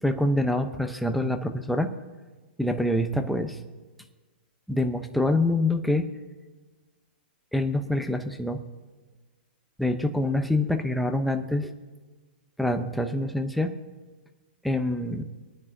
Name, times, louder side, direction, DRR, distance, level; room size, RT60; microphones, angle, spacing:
voice 1, 0.0-1.9 2.6-3.6 4.7-6.1 7.5-8.6 9.8-11.7 12.6-13.7 14.6-15.2, left 1 dB, ahead, 6 dB, 0.7 m, -25 dB
24.5 x 9.4 x 2.7 m, 1.3 s
hypercardioid pair, 140°, 6 cm